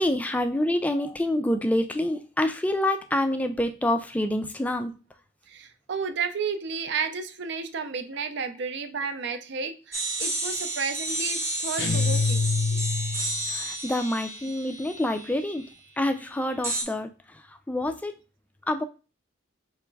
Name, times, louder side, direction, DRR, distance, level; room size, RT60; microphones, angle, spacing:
voice 1, 0.0-4.9 13.5-15.7 16.0-18.2 18.7-18.8, left 1 dB, 10° left, 8 dB, 0.3 m, -27 dB
voice 2, 5.5-12.4 12.7-12.8, right 5 dB, 60° right, 9 dB, 0.5 m, -32 dB
sound 1, 9.9-15.6 16.6-16.8, right 2 dB, 15° right, 0.9 m, -31 dB
sound 2, 11.8-13.5, left 4 dB, 60° left, 0.6 m, -25 dB
3.4 x 3.0 x 4.6 m, 0.33 s
head